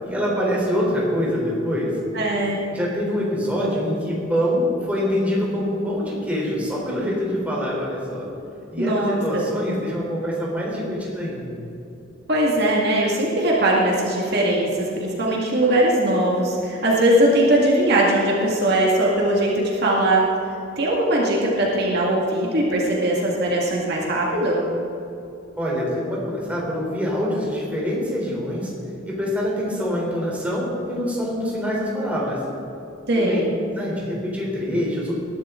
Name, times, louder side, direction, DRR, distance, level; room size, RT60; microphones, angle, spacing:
voice 1, 0.0-2.0 2.7-8.3 8.7-11.6 25.6-28.7 29.0-32.4 33.2-33.4 33.8-35.2, equal, 5° right, -4 dB, 3.6 m, -25 dB
voice 2, 2.1-2.6 8.8-9.4 12.3-20.2 20.8-24.7 33.1-33.5, right 1 dB, 55° right, -3 dB, 2.1 m, -20 dB
20.5 x 12.0 x 3.8 m, 2.8 s
head